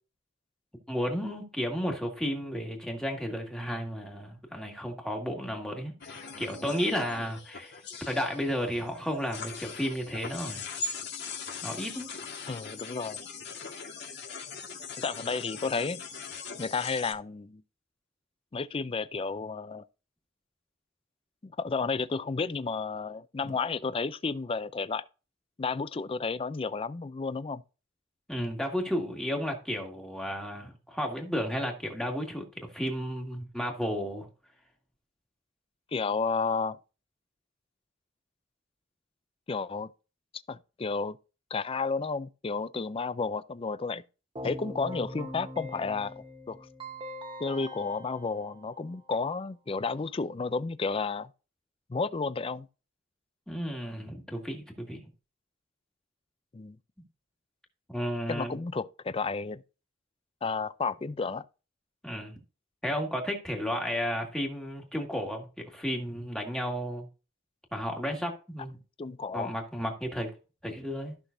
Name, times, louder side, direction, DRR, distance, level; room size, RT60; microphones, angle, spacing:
voice 1, 0.9-10.6 11.6-12.1 28.3-34.3 44.4-44.5 53.5-55.0 57.9-58.6 62.0-62.4 62.8-67.1 67.7-68.8 69.3-70.3 70.6-71.2, equal, 5° left, 2.0 m, -33 dB
sound 1, 6.0-17.1, left 4 dB, 60° left, 1.8 m, -41 dB
voice 2, 12.5-13.2 15.0-16.0 16.6-17.6 18.5-19.8 21.4-25.0 25.6-27.6 35.9-36.8 39.5-39.9 40.5-41.2 41.5-44.0 44.4-46.7 47.4-51.3 51.9-52.7 56.5-56.8 58.3-59.6 60.4-61.4 69.0-69.5, left 4 dB, 30° left, 0.4 m, -32 dB
Keyboard (musical), 44.4-49.3, equal, 25° right, 1.1 m, -42 dB
14.0 x 6.0 x 2.7 m
head